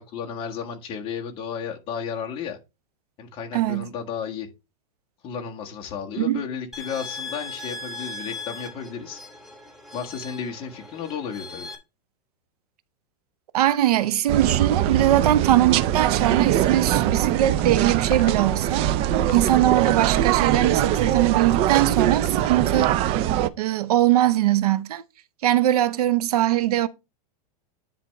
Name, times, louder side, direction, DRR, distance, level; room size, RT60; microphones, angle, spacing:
voice 1, 0.0-2.6 3.2-4.5 5.2-9.2 9.9-11.7 22.2-22.9, left 7 dB, 30° left, 1.7 m, -33 dB
voice 2, 3.5-3.9 6.2-6.4 13.5-18.9 19.3-22.9 23.6-25.0 25.4-26.9, right 13 dB, 85° right, 0.8 m, -21 dB
sound 1, 6.7-11.8, left 3 dB, ahead, 2.2 m, -38 dB
sound 2, 14.3-23.5, right 12 dB, 30° right, 0.5 m, -22 dB
sound 3, 17.2-18.9 19.2-22.9, left 10 dB, 85° left, 1.0 m, -43 dB
10.0 x 3.5 x 5.3 m
supercardioid pair, 155°, 19 cm